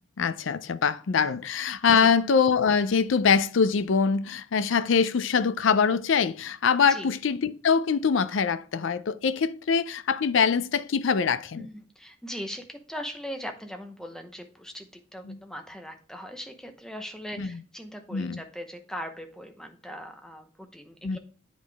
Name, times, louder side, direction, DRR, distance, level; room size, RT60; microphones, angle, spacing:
voice 1, 0.2-11.7 15.3-15.4 17.4-17.5 18.1-18.4 21.0-21.2, left 6 dB, 75° left, 0.5 m, -24 dB
voice 2, 11.6-21.2, equal, 5° left, 0.8 m, -40 dB
8.8 x 5.1 x 3.4 m
head